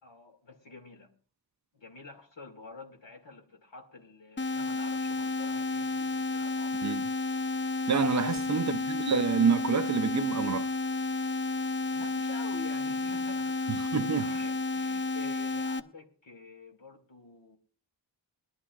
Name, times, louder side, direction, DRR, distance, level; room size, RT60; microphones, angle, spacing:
voice 1, 0.0-1.1 1.7-6.9 8.0-8.5 11.9-13.7 14.2-17.6, left 3 dB, 85° left, 2.2 m, -48 dB
sound 1, 4.4-15.8, left 3 dB, 25° left, 0.6 m, -31 dB
voice 2, 7.9-10.7 13.7-14.3, right 6 dB, 45° right, 0.5 m, -28 dB
22.5 x 11.0 x 2.4 m
wide cardioid pair, 65°, 43 cm